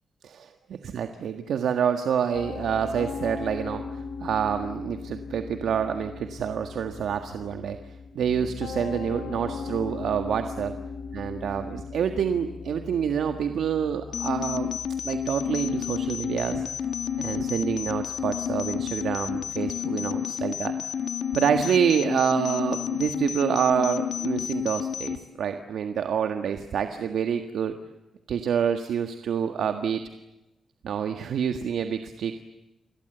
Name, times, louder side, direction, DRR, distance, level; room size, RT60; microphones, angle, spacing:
voice 1, 0.2-10.7 11.1-14.7 15.0-16.6 17.2-20.8 21.3-27.8 28.3-30.0 30.8-32.5, right 7 dB, 80° right, 7 dB, 1.7 m, -27 dB
Piano, 2.3-19.5, left 5 dB, 90° left, 3.3 m, -39 dB
sound 1, 14.1-25.2, left 9 dB, 70° left, 1.6 m, -30 dB
29.5 x 22.0 x 8.1 m, 0.97 s
wide cardioid pair, 130°, 0 cm